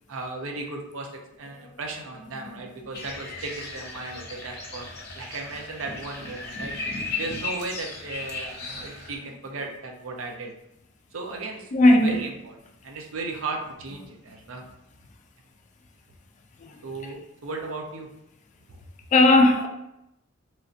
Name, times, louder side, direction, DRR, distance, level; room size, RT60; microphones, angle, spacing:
voice 1, 0.1-1.1 1.4-4.9 5.2-6.7 7.2-10.5 11.1-11.7 12.0-12.6 12.8-14.6 16.8-18.1 18.7-18.8, right 3 dB, 85° right, 0.5 m, -35 dB
sound 1, 2.9-9.2, left 3 dB, 55° left, 0.7 m, -36 dB
voice 2, 6.5-7.4 8.7-8.8 11.7-12.2 16.6-17.1 19.1-19.7, left 2 dB, 35° left, 0.3 m, -20 dB
3.1 x 2.6 x 2.4 m
head